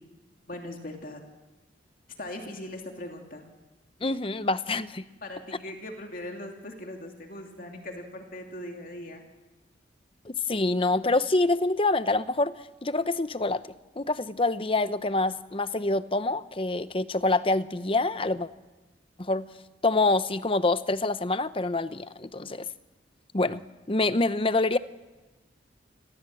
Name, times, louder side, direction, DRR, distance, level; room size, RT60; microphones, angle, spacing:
voice 1, 0.5-1.2 2.2-3.5 5.2-9.2, left 1 dB, 50° left, 2 dB, 2.7 m, -40 dB
voice 2, 4.0-5.0 10.2-12.6 12.8-13.6 14.0-18.5 19.2-19.5 19.8-22.7 23.3-23.6 23.9-24.8, left 2 dB, 30° left, 13 dB, 0.8 m, -26 dB
29.5 x 22.0 x 7.6 m, 1.1 s
head